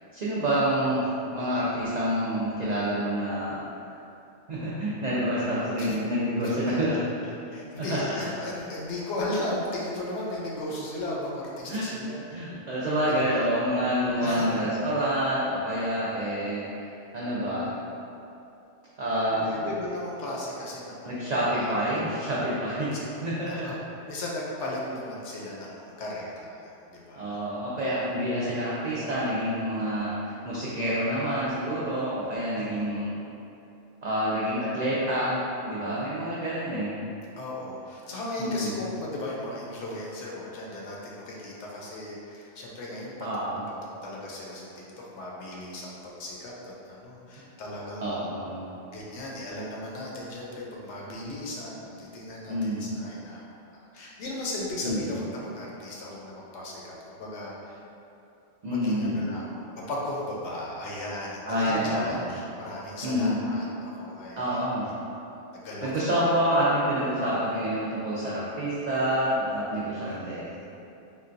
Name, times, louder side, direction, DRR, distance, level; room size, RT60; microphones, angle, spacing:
voice 1, 0.1-3.6 4.5-7.0 7.8-8.3 11.6-11.9 12.3-17.7 19.0-19.5 21.0-23.7 27.2-33.2 34.0-36.9 38.4-38.7 43.2-43.6 48.0-48.7 52.5-52.9 54.8-55.1 58.6-59.5 61.5-62.3 63.0-63.5 64.4-64.9 65.8-70.5, equal, 90° right, -8 dB, 0.3 m, -28 dB
voice 2, 6.4-6.8 7.5-12.5 13.1-13.4 14.2-14.6 19.3-22.0 22.8-23.8 24.1-27.4 32.6-32.7 37.4-43.1 44.0-44.7 45.0-48.2 48.9-53.4 53.9-57.8 58.7-64.6 65.1-65.2 65.5-66.2 70.1-70.7, left 1 dB, 70° left, -4 dB, 0.8 m, -36 dB
3.7 x 2.2 x 2.5 m, 2.7 s
omnidirectional pair, 1.3 m